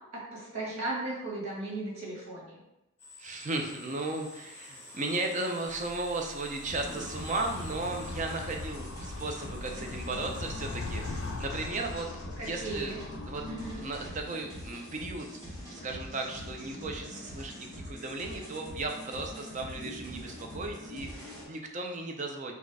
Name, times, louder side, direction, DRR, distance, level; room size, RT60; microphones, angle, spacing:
voice 1, 0.1-2.6 12.4-13.0 13.5-13.8, right 2 dB, 75° right, -4 dB, 1.6 m, -36 dB
sound 1, 3.0-12.0, left 1 dB, 10° left, 0.9 m, -51 dB
voice 2, 3.2-12.1 12.4-13.0 13.3-13.4 13.7-15.3 15.7-22.5, right 2 dB, 35° right, 3 dB, 0.5 m, -35 dB
Animal, 5.7-14.2, left 3 dB, 55° left, 0.4 m, -41 dB
sound 2, 6.6-21.4, equal, 20° right, 1.5 m, -43 dB
4.3 x 2.3 x 4.7 m, 0.88 s
head